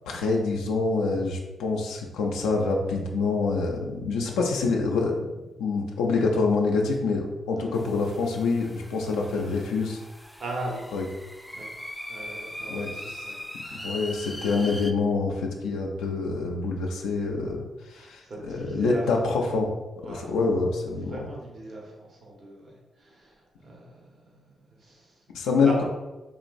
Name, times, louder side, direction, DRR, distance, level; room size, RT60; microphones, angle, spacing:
voice 1, 0.1-5.3 5.6-10.0 10.9-11.1 12.7-13.2 13.8-19.7 20.1-21.2 25.3-25.8, left 4 dB, 85° left, 0 dB, 0.4 m, -26 dB
sound 1, 7.7-14.9, left 1 dB, 10° left, 0.4 m, -40 dB
voice 2, 10.4-10.8 11.5-11.7 12.1-13.9 17.9-19.3 20.0-20.3 21.0-22.7 23.0-25.2 25.6-25.8, right 1 dB, 60° right, -2 dB, 1.0 m, -39 dB
3.7 x 3.0 x 2.5 m, 1.1 s
hypercardioid pair, 40°, 0 cm